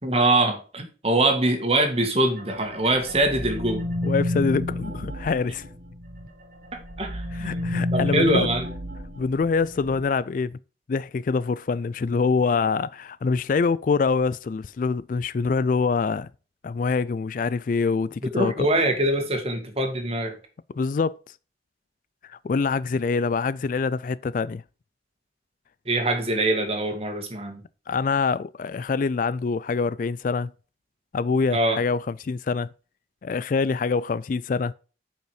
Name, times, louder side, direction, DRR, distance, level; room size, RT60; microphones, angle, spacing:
voice 1, 0.0-3.8 7.0-8.7 18.3-20.4 25.9-27.6 31.5-31.8, right 2 dB, 35° right, 2.0 m, -23 dB
sound 1, 2.4-6.3 6.6-10.0, left 1 dB, 50° right, 1.6 m, -31 dB
voice 2, 4.0-5.7 7.3-8.5 9.2-10.6 10.9-16.3 16.6-18.7 20.7-21.2 22.2-24.6 27.9-30.5 31.1-32.7 33.2-34.7, left 4 dB, 45° left, 0.3 m, -25 dB
9.0 x 5.5 x 4.9 m
head